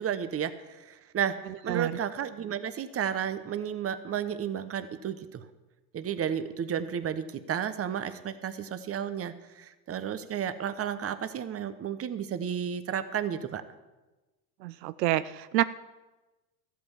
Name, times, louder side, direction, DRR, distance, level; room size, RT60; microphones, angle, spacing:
voice 1, 0.0-1.4 1.6-5.4 5.9-13.6, right 8 dB, 30° right, 11 dB, 1.1 m, -32 dB
voice 2, 1.5-2.0 14.6-15.6, right 15 dB, 85° right, 14 dB, 0.6 m, -28 dB
13.5 x 8.7 x 7.2 m, 1.1 s
hypercardioid pair, 95°, 48 cm